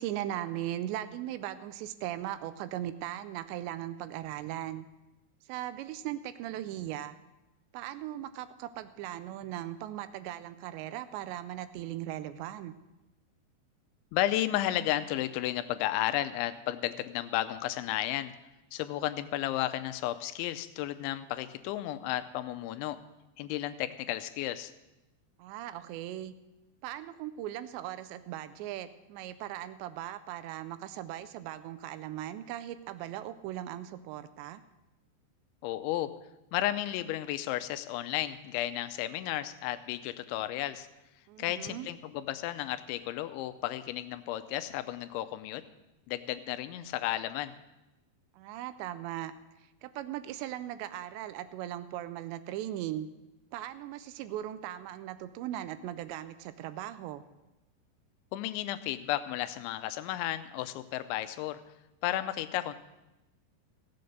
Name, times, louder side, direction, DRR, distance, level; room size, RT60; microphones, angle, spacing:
voice 1, 0.0-4.9 5.5-7.2 7.7-12.7 25.4-26.3 26.8-34.6 41.3-41.9 48.4-49.3 49.8-53.1 53.5-57.2, right 12 dB, 85° right, 13 dB, 2.7 m, -38 dB
voice 2, 14.1-18.3 18.7-23.0 23.4-24.7 35.6-36.1 36.5-40.9 41.4-45.6 46.1-47.6 58.3-61.6 62.0-62.7, left 14 dB, 85° left, 11 dB, 3.0 m, -33 dB
16.0 x 7.7 x 6.6 m, 0.98 s
omnidirectional pair, 5.2 m